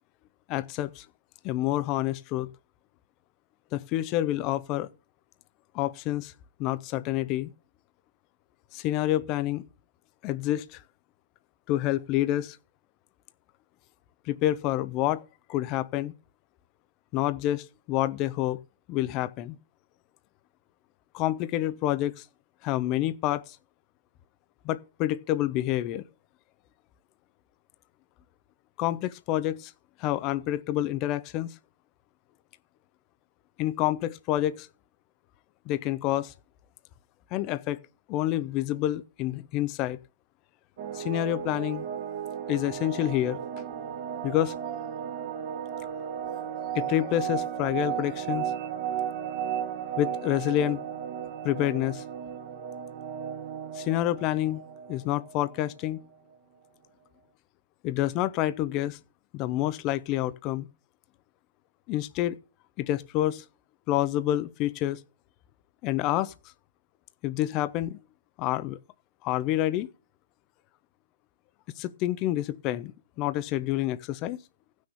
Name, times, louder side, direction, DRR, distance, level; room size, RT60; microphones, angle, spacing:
voice 1, 0.5-1.1 1.4-2.5 3.7-4.9 5.7-6.3 6.6-7.5 8.7-9.6 10.2-10.8 11.7-12.6 14.3-15.2 15.5-16.1 17.1-18.6 18.9-19.6 21.1-22.2 22.6-23.6 24.6-26.0 28.8-29.7 30.0-31.5 33.6-34.7 35.7-36.3 37.3-37.8 38.1-40.0 40.9-41.9 42.5-43.4 44.2-44.6 46.7-48.5 50.0-50.8 51.4-52.0 53.7-54.6 54.9-56.0 57.8-59.0 59.3-60.7 61.9-62.4 62.8-63.4 63.9-65.0 65.8-66.3 67.2-68.0 68.4-68.8 69.2-69.9 71.8-74.4, left 14 dB, 30° left, 0.7 m, -28 dB
sound 1, 40.8-56.0, right 9 dB, 45° right, 1.6 m, -35 dB
15.5 x 6.3 x 7.1 m
hypercardioid pair, 135°, 0 cm